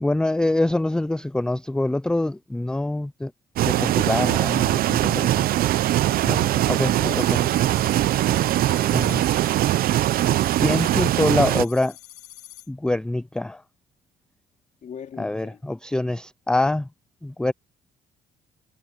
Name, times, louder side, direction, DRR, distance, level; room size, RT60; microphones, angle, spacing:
voice 1, 0.0-3.3 3.6-5.5 6.2-7.2 8.9-9.2 10.5-12.0 12.7-13.6 15.2-16.9 17.2-17.5, left 2 dB, 5° left, 0.4 m, -25 dB
sound 1, 3.6-11.6, right 14 dB, 60° right, 0.6 m, -21 dB
voice 2, 6.5-7.9 8.3-9.0 14.8-15.6, left 8 dB, 45° left, 2.9 m, -41 dB
sound 2, 7.2-12.7, left 13 dB, 75° left, 5.0 m, -45 dB
cardioid pair, 110°, 17 cm